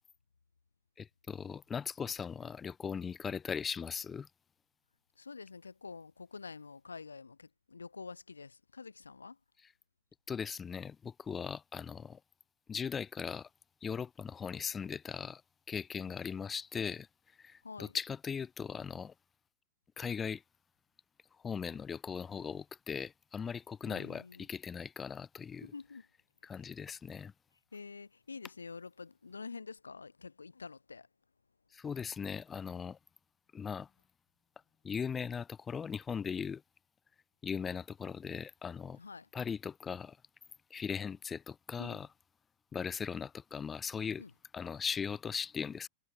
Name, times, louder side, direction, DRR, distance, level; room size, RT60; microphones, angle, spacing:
voice 1, 1.0-4.3 10.3-12.2 12.7-13.5 13.8-15.4 15.7-17.1 17.4-19.1 20.0-20.4 21.4-25.7 26.5-27.3 31.7-33.0 33.5-33.9 34.8-36.6 37.4-39.0 39.3-40.2 40.7-42.1 42.7-44.2 44.5-45.9, left 6 dB, 20° left, 0.6 m, -39 dB
voice 2, 5.1-9.4 17.6-18.0 23.9-24.5 25.6-26.1 26.4-26.7 27.7-31.1 39.0-39.3 41.8-42.0 44.2-44.3, left 4 dB, 75° left, 0.8 m, -47 dB
figure-of-eight pair, 90°, 0 cm